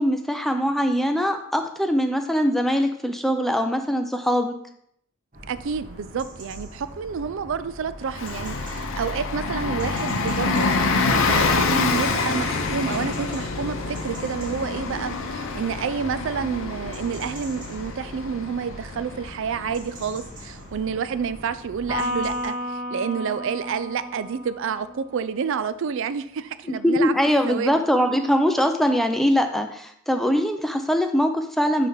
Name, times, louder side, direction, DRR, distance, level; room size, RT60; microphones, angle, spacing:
voice 1, 0.0-4.6 26.7-31.9, equal, ahead, 5 dB, 0.5 m, -22 dB
sound 1, 5.3-22.5, equal, 40° right, 1.4 m, -42 dB
voice 2, 5.5-27.1 27.5-27.8, right 6 dB, 65° right, 14 dB, 0.4 m, -29 dB
Bus, 8.1-20.4, left 4 dB, 65° left, 0.7 m, -26 dB
Electric guitar, 21.9-25.4, left 1 dB, 15° right, 2.1 m, -32 dB
9.5 x 3.3 x 3.9 m, 0.70 s
head